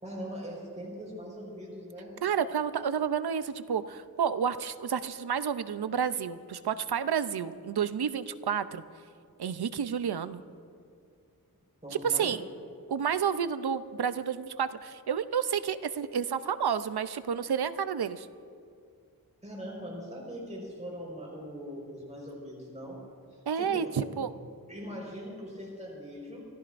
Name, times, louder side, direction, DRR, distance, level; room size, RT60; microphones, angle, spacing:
voice 1, 0.0-2.2 11.8-12.4 19.4-23.0 23.3-24.2 24.7-26.5, equal, 20° right, -3 dB, 4.6 m, -41 dB
voice 2, 2.2-8.8 9.4-10.4 12.0-12.4 12.9-18.3 23.5-24.3, right 7 dB, 80° right, 12 dB, 0.6 m, -30 dB
28.5 x 15.0 x 2.6 m, 2.3 s
wide cardioid pair, 65°, 38 cm